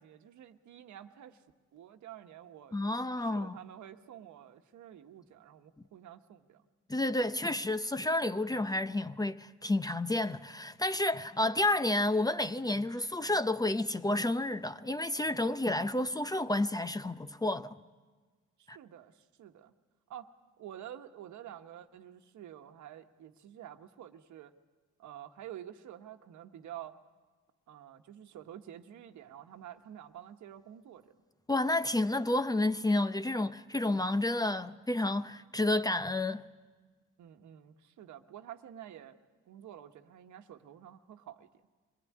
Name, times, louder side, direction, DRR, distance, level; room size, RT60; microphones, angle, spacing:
voice 1, 0.0-1.4 1.7-2.8 3.2-6.6 18.6-19.7 20.1-20.3 20.6-24.5 25.0-27.0 27.7-31.0 37.2-39.2 39.4-41.5, right 11 dB, 75° right, 1.3 m, -49 dB
voice 2, 2.7-3.6 6.9-17.8 18.7-18.8 31.5-36.4, left 2 dB, 15° left, 0.6 m, -30 dB
24.0 x 18.0 x 9.5 m
cardioid pair, 90°, 30 cm